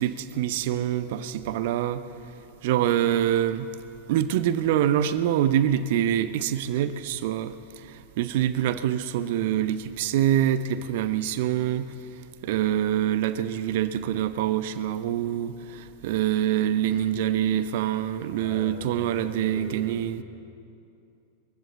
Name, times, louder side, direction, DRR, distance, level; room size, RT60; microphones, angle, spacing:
voice 1, 0.0-2.0 2.6-3.7 4.1-11.9 12.4-20.2, right 11 dB, 50° right, 13 dB, 0.7 m, -25 dB
voice 2, 18.4-20.2, left 1 dB, 45° left, 2 dB, 5.3 m, -42 dB
22.5 x 15.0 x 8.1 m, 2.6 s
figure-of-eight pair, 90°, 0 cm